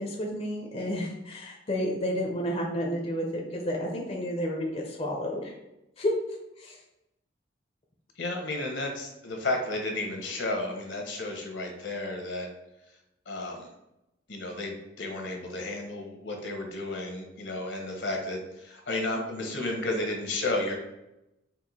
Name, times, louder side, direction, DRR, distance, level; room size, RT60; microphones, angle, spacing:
voice 1, 0.0-5.6 6.0-6.1 6.6-6.8, equal, 35° left, 0 dB, 0.6 m, -31 dB
voice 2, 8.2-12.5 13.3-13.7 14.3-20.7, left 2 dB, 75° left, 2 dB, 1.0 m, -32 dB
4.5 x 2.6 x 4.0 m, 0.91 s
head